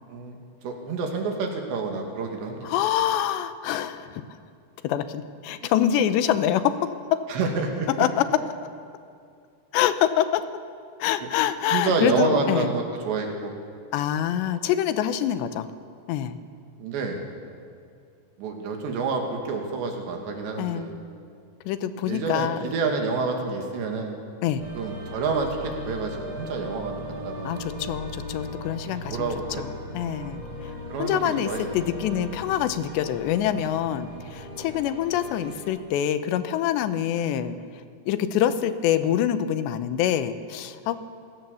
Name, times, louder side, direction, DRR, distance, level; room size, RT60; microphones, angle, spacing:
voice 1, 0.6-2.7 7.3-8.1 11.2-11.3 11.7-13.5 16.8-17.2 18.4-20.9 22.1-24.2 24.8-27.0 27.3-27.5 29.1-29.6 30.9-31.6, right 4 dB, 80° right, 2 dB, 4.5 m, -28 dB
voice 2, 2.6-4.2 4.8-7.3 8.0-8.2 9.7-10.5 11.0-12.7 13.9-15.7 16.1-16.4 20.6-20.9 21.7-22.6 24.4-24.6 27.4-29.3 29.6-30.7 31.0-37.6 38.1-41.0, left 10 dB, 85° left, 11 dB, 3.1 m, -25 dB
sound 1, 24.6-35.6, left 1 dB, 30° right, 4.2 m, -38 dB
26.5 x 17.0 x 7.0 m, 2.3 s
omnidirectional pair, 5.0 m